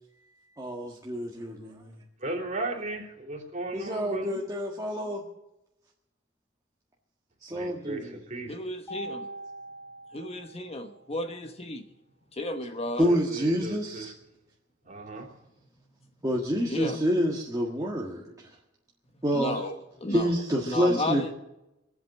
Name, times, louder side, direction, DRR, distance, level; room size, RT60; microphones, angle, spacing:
voice 1, 0.6-1.9 3.7-5.2 7.4-8.2 13.0-14.1 16.2-18.2 19.2-19.6 20.1-21.3, equal, 20° right, -3 dB, 1.6 m, -28 dB
voice 2, 2.2-4.4 7.5-8.5 13.0-14.0 14.9-15.3, right 2 dB, 40° right, 1 dB, 3.2 m, -36 dB
voice 3, 8.5-9.3 10.1-11.9 12.3-13.1 16.7-17.0 19.3-20.3 20.6-21.3, left 1 dB, 30° left, 6 dB, 1.1 m, -33 dB
Mallet percussion, 8.9-11.1, right 1 dB, 15° left, 1.2 m, -42 dB
23.0 x 8.0 x 7.5 m, 0.91 s
head